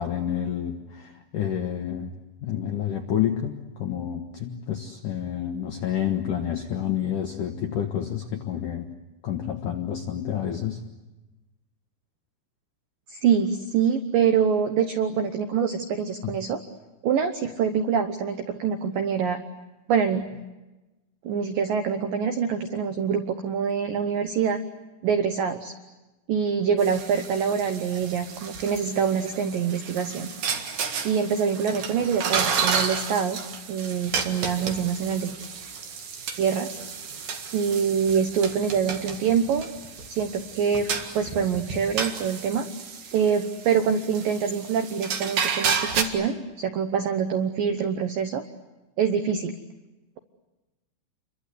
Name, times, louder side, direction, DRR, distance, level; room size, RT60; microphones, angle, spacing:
voice 1, 0.0-2.1 2.4-8.9 9.2-10.8 16.2-16.3, left 9 dB, 75° left, 3 dB, 1.9 m, -29 dB
voice 2, 13.1-16.6 17.0-19.4 19.9-20.2 21.2-24.6 25.0-25.7 26.3-30.3 31.0-33.4 33.7-35.3 36.4-36.8 37.5-39.7 40.1-40.9 41.1-42.7 43.1-48.4 49.0-49.6, right 7 dB, 85° right, 7 dB, 1.9 m, -25 dB
sound 1, 26.8-46.0, right 6 dB, 50° right, 2.6 m, -32 dB
29.0 x 23.5 x 8.3 m, 1.1 s
omnidirectional pair, 5.7 m